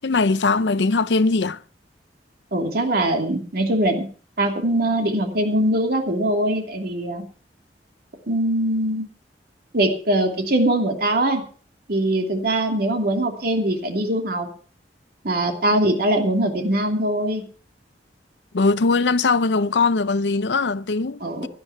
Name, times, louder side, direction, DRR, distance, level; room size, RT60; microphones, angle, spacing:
voice 1, 0.0-1.6 18.5-21.5, left 3 dB, 85° left, 0.7 m, -20 dB
voice 2, 2.5-4.0 4.4-7.2 8.3-9.1 9.7-11.4 11.9-14.5 15.2-17.4 21.2-21.5, right 1 dB, 60° right, 2.8 m, -22 dB
16.5 x 11.5 x 4.6 m
head